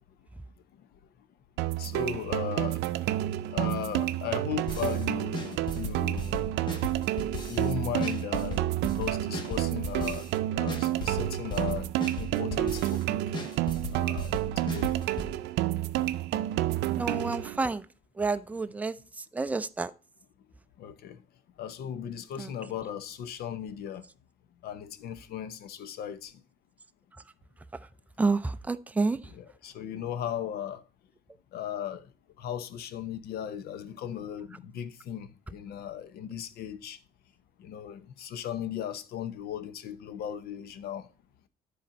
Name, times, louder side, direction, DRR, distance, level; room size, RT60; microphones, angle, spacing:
sound 1, 1.6-17.6, right 14 dB, 85° right, 0.5 m, -30 dB
voice 1, 1.8-2.8 3.5-6.5 7.5-8.7 9.0-10.3 10.5-11.9 12.2-13.2 13.9-14.3 14.6-14.9 20.8-21.2 21.6-24.0 24.6-26.3 29.3-30.8 31.5-32.1 32.4-37.0 37.6-41.1, left 9 dB, 70° left, 0.9 m, -37 dB
sound 2, 4.7-5.0 5.3-7.7 8.0-10.4 10.7-13.0 13.3-15.3, left 1 dB, 25° left, 1.5 m, -37 dB
voice 2, 17.0-17.8 18.2-19.9 22.4-22.5 28.2-29.2, right 3 dB, 10° right, 0.4 m, -29 dB
10.0 x 4.3 x 5.2 m
cardioid pair, 110°, 17 cm